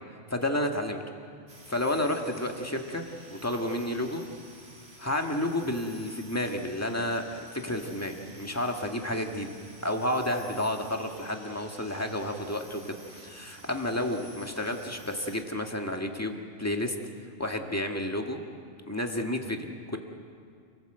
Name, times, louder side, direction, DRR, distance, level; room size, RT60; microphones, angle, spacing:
voice 1, 0.3-1.0 1.7-3.0 3.3-4.2 5.0-9.5 9.8-17.0 17.4-18.4 18.9-20.0, left 1 dB, 15° left, 3 dB, 1.8 m, -31 dB
sound 1, 1.5-15.4, right 1 dB, 70° right, 2.7 m, -51 dB
28.5 x 17.5 x 8.0 m, 2.2 s
omnidirectional pair, 1.2 m